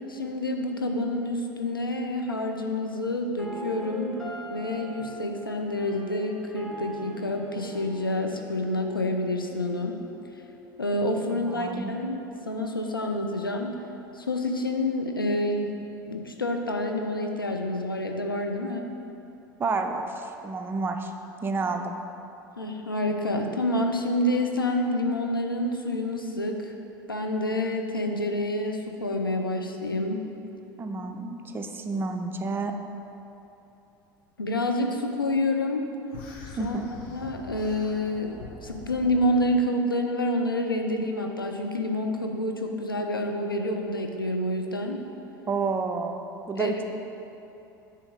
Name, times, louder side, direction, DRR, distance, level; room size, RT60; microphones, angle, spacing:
voice 1, 0.1-4.1 4.5-10.0 10.8-12.2 12.5-13.7 14.1-15.7 16.1-18.9 22.6-26.7 27.1-30.3 34.4-35.8 36.6-36.8 37.1-45.0 46.6-46.7, left 1 dB, 85° left, 3 dB, 0.4 m, -28 dB
sound 1, 3.4-11.4, right 2 dB, 5° left, 1.1 m, -41 dB
voice 2, 11.3-11.9 19.6-21.1 21.4-22.0 30.8-32.7 36.6-36.9 45.5-46.8, right 4 dB, 20° right, 5 dB, 0.4 m, -30 dB
sound 2, 36.1-39.5, left 3 dB, 50° left, 0.8 m, -44 dB
7.0 x 2.8 x 5.0 m, 3.0 s
figure-of-eight pair, 75°, 11 cm